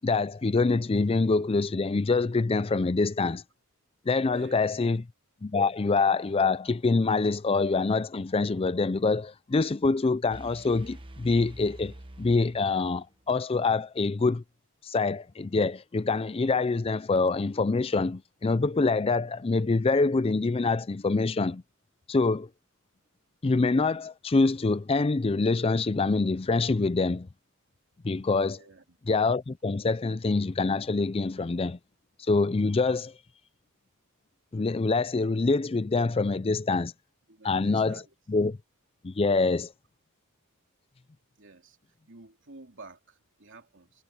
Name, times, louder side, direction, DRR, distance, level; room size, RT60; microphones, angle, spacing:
voice 1, 0.0-3.4 4.1-5.0 5.4-14.4 14.8-21.6 22.1-22.5 23.4-27.3 28.0-28.6 29.1-31.8 32.3-33.1 34.5-36.9 37.4-38.0 38.3-38.6 39.0-39.7, left 3 dB, 25° left, 0.4 m, -25 dB
voice 2, 4.2-4.9 28.5-29.0 37.3-38.1 41.4-41.8 42.1-44.0, right 3 dB, 55° right, 3.3 m, -51 dB
sound 1, 10.3-13.2, right 1 dB, 25° right, 1.2 m, -46 dB
head